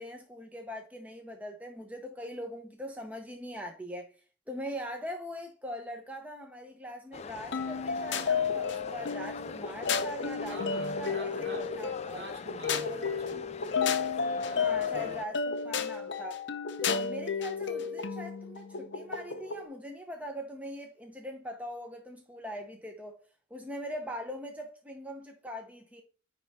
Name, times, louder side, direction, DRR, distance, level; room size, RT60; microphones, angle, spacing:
voice 1, 0.0-4.2 4.5-12.2 14.5-16.4 16.8-23.2 23.5-26.0, equal, 5° right, 0.7 m, -41 dB
sound 1, 7.1-15.2, left 5 dB, 30° left, 0.3 m, -43 dB
sound 2, 7.5-19.7, left 5 dB, 60° left, 0.7 m, -32 dB
voice 2, 10.4-11.7 12.1-13.8 14.9-15.2, equal, 55° right, 1.9 m, -46 dB
9.8 x 3.3 x 4.1 m
head